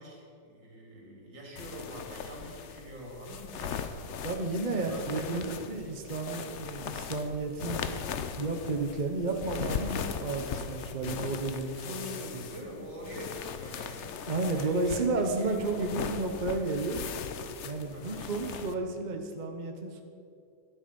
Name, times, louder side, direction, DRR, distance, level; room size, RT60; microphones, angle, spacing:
voice 1, 0.0-3.8 4.7-5.6 11.8-14.1 14.5-15.0 15.3-15.6 17.9-18.2, right 1 dB, 70° right, -2 dB, 3.4 m, -44 dB
sound 1, 1.6-18.7, left 7 dB, 70° left, 0.6 m, -39 dB
voice 2, 4.2-7.8 8.4-12.4 14.3-17.0 17.6-20.0, right 3 dB, 35° right, 3 dB, 0.8 m, -32 dB
12.5 x 10.0 x 5.4 m, 2.5 s
omnidirectional pair, 2.0 m